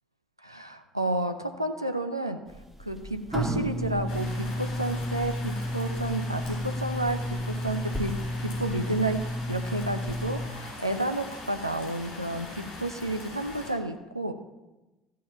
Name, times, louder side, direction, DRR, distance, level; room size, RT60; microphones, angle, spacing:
voice 1, 0.4-2.5 2.8-14.3, right 1 dB, 90° right, 7 dB, 0.7 m, -31 dB
sound 1, 2.5-10.5, equal, 5° right, 2.0 m, -32 dB
sound 2, 4.1-13.7, left 2 dB, 55° left, 4.1 m, -42 dB
14.0 x 5.5 x 7.5 m, 1.1 s
figure-of-eight pair, 55°, 2 cm